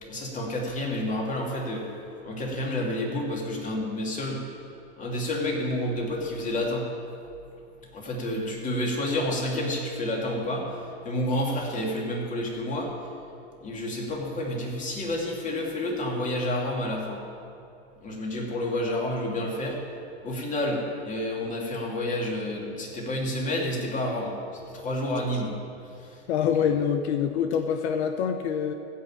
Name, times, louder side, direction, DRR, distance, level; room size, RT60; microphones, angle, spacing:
voice 1, 0.0-1.9 2.2-4.4 5.0-6.9 7.9-13.0 13.6-17.2 18.0-19.8 20.2-25.5 26.0-26.2, left 1 dB, 25° left, -2 dB, 2.8 m, -29 dB
voice 2, 26.3-28.7, left 8 dB, 80° left, 7 dB, 0.9 m, -25 dB
15.5 x 5.6 x 8.9 m, 2.6 s
supercardioid pair, 125°, 33 cm